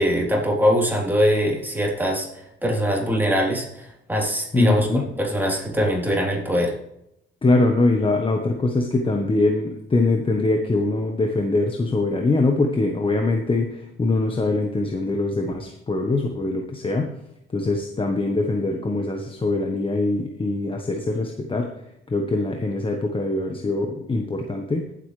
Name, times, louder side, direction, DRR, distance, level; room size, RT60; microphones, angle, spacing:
voice 1, 0.0-6.7, equal, 10° right, -2 dB, 3.6 m, -22 dB
voice 2, 4.5-5.0 7.4-17.1 17.5-21.7 22.1-24.8, left 2 dB, 25° left, 3 dB, 1.2 m, -23 dB
18.0 x 7.9 x 3.3 m, 0.81 s
cardioid pair, 90°, 20 cm